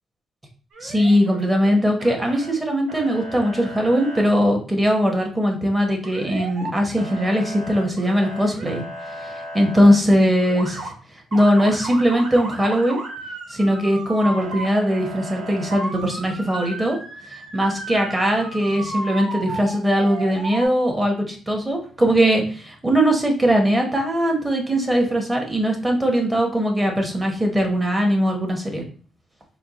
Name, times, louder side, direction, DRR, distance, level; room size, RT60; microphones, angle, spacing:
Motor vehicle (road) / Siren, 0.7-1.7 2.0-2.5 2.9-4.2 6.0-6.7 7.0-9.9 10.4-10.9 11.3-20.7, right 2 dB, 60° right, 0.9 m, -34 dB
voice 1, 0.8-8.8 9.2-10.9 11.3-13.0 13.5-17.0 17.5-28.8, equal, 15° right, 2 dB, 1.0 m, -20 dB
4.4 x 2.1 x 3.9 m, 0.41 s
cardioid pair, 105°, 0 cm